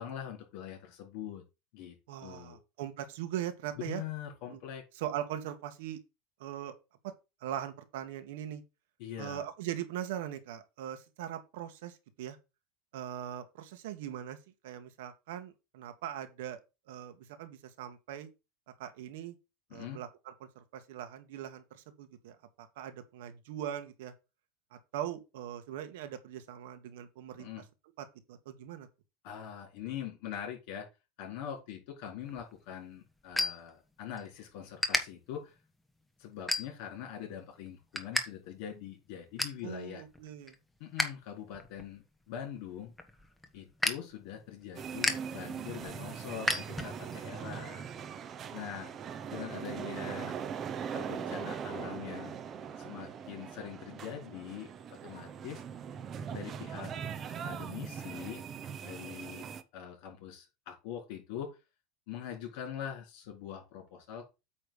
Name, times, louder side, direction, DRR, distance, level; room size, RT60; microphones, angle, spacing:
voice 1, 0.0-1.4 1.7-2.6 3.8-4.8 9.0-9.4 19.7-20.0 27.4-27.6 29.2-30.9 31.2-35.5 36.2-40.0 40.8-42.9 43.5-47.9 48.5-48.9 49.3-50.3 50.9-52.3 52.8-54.7 55.0-55.6 56.3-56.9 57.4-58.4 58.8-59.5 59.7-61.5 62.1-64.3, left 9 dB, 65° left, 4.1 m, -43 dB
voice 2, 2.1-4.0 4.5-4.6 4.9-6.0 6.4-6.7 7.0-7.1 7.4-8.6 9.2-12.4 12.9-14.4 14.6-16.6 16.9-18.3 18.8-19.3 19.7-24.1 24.7-27.5 28.0-28.9 39.6-40.6, right 11 dB, 80° right, 1.5 m, -40 dB
sound 1, 32.2-34.3 34.6-35.0 35.6-35.8 36.3-37.0 37.4-38.2 38.5-38.6 39.0-39.6 40.1-41.1 41.4-47.2, left 1 dB, 5° left, 1.2 m, -34 dB
sound 2, 44.8-59.6, right 7 dB, 30° right, 0.7 m, -41 dB
8.8 x 3.3 x 6.6 m
supercardioid pair, 140°, 0 cm